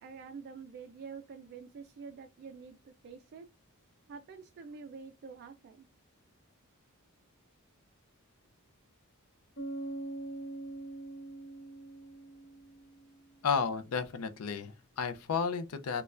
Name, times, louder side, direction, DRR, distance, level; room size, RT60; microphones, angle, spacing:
voice 1, 0.0-3.5 4.1-5.9, right 5 dB, 50° right, 0.3 m, -47 dB
Bass guitar, 9.6-13.2, right 2 dB, 45° left, 0.8 m, -43 dB
voice 2, 13.4-16.0, left 6 dB, 75° left, 0.5 m, -32 dB
4.2 x 2.2 x 2.4 m
head